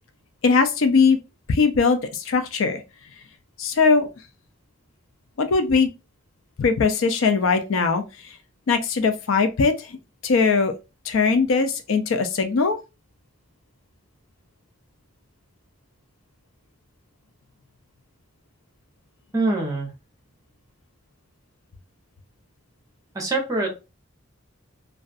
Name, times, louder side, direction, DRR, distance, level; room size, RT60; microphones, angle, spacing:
voice 1, 0.4-1.2 1.5-2.8 3.6-4.1 5.4-5.9 6.6-8.0 8.7-10.0 10.2-10.7 11.1-12.8, left 4 dB, 80° left, 0.4 m, -20 dB
voice 2, 19.3-19.9 23.1-23.8, right 2 dB, 15° right, 0.8 m, -24 dB
2.3 x 2.3 x 2.5 m
head